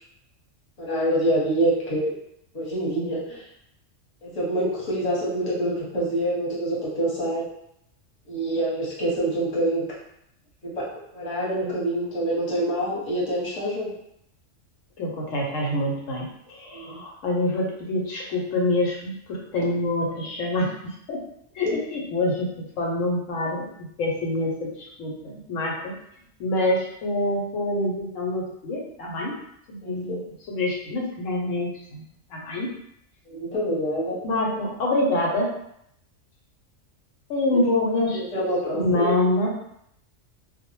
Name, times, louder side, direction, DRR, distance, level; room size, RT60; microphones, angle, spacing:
voice 1, 0.8-2.1 2.5-3.4 4.2-7.5 8.3-9.8 10.6-10.9 11.1-13.9 16.7-17.0 21.6-21.8 29.8-30.2 33.4-34.2 37.5-37.6 38.1-39.1, right 1 dB, 35° left, -7 dB, 0.9 m, -26 dB
voice 2, 15.0-21.2 21.5-22.5 22.8-25.9 26.4-29.3 29.7-32.0 32.3-32.7 34.2-35.5 37.3-38.2 38.7-39.5, left 2 dB, 85° left, -1 dB, 1.0 m, -26 dB
2.2 x 2.0 x 2.9 m, 0.75 s
omnidirectional pair, 1.3 m